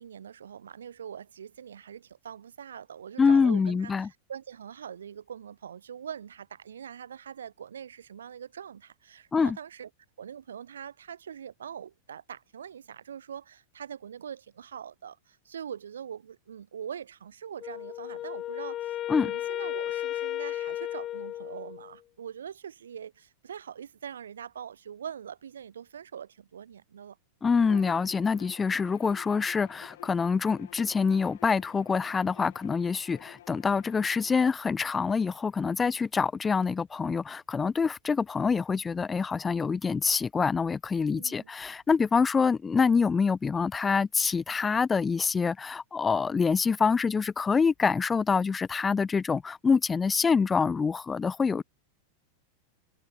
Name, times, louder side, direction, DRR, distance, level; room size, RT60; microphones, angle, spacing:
voice 1, 0.0-9.9 10.2-27.2 41.1-41.5, right 8 dB, 65° right, 6.9 m, -43 dB
voice 2, 3.2-4.1 9.3-9.6 19.1-19.3 27.4-51.6, left 5 dB, 15° left, 0.4 m, -26 dB
Wind instrument woodwind instrument, 17.6-22.0, left 13 dB, 30° left, 5.4 m, -34 dB
Bowed string instrument, 27.6-34.4, left 13 dB, 55° left, 4.9 m, -50 dB
figure-of-eight pair, 90°, 0 cm